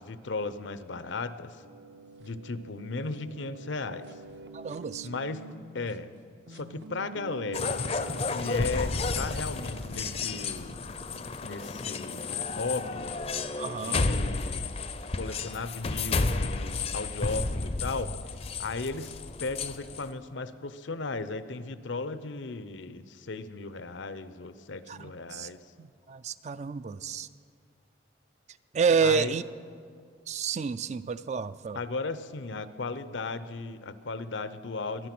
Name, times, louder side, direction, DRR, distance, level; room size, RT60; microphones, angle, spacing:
voice 1, 0.0-1.6 2.2-4.1 5.0-6.1 6.5-7.8 8.3-10.8 11.4-13.1 13.6-18.2 18.6-25.6 29.0-29.4 31.7-35.1, left 3 dB, 80° left, 13 dB, 0.7 m, -36 dB
sound 1, 1.6-6.0 6.5-12.4 13.4-13.5 13.8-17.1, right 3 dB, 65° right, 0.9 m, -48 dB
voice 2, 4.5-5.1 13.6-14.1 24.9-25.5 25.8-27.3 28.7-29.4 30.3-31.8, right 6 dB, 35° right, 14 dB, 0.3 m, -29 dB
sound 2, 7.5-20.1, left 3 dB, 35° left, 0.5 m, -32 dB
23.5 x 9.9 x 6.0 m, 2.2 s
head